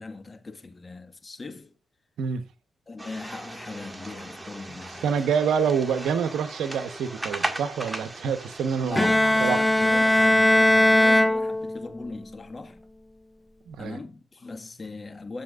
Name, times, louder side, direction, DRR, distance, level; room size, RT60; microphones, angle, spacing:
voice 1, 0.0-1.8 2.9-5.1 8.8-12.8 13.8-15.4, left 3 dB, 35° left, 1.7 m, -39 dB
sound 1, 3.0-10.3, right 2 dB, 20° right, 1.8 m, -37 dB
voice 2, 5.0-9.1 9.4-9.6 13.7-14.0, right 6 dB, 80° right, 1.1 m, -26 dB
Bowed string instrument, 9.0-12.1, left 1 dB, 10° left, 0.5 m, -20 dB
11.5 x 7.5 x 2.4 m
cardioid pair, 60°, 0 cm